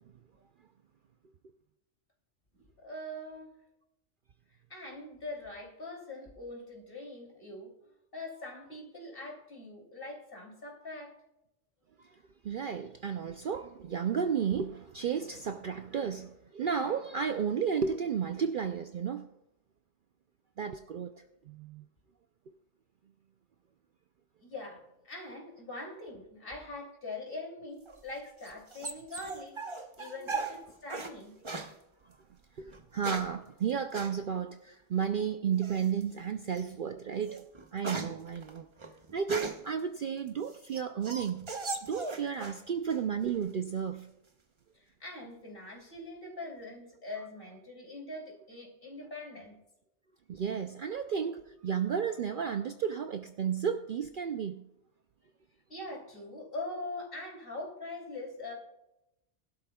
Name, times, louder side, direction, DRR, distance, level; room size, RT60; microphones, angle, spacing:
voice 1, 2.5-3.5 4.7-7.7 8.1-11.1 24.4-29.6 29.9-31.3 44.7-49.6 55.7-58.5, left 2 dB, 50° left, 3.1 m, -43 dB
voice 2, 12.4-19.3 20.6-21.8 30.2-30.4 32.6-37.4 37.7-38.7 39.1-41.5 41.8-44.1 47.2-47.3 50.3-54.6, right 7 dB, 60° right, 0.6 m, -33 dB
sound 1, 27.9-31.1 31.4-31.7 32.7-33.4 33.9-34.1 35.6-36.0 36.5-36.7 37.1-39.7 40.3-42.6 42.9-43.5, right 3 dB, 25° right, 0.9 m, -39 dB
20.5 x 12.0 x 2.3 m
omnidirectional pair, 1.2 m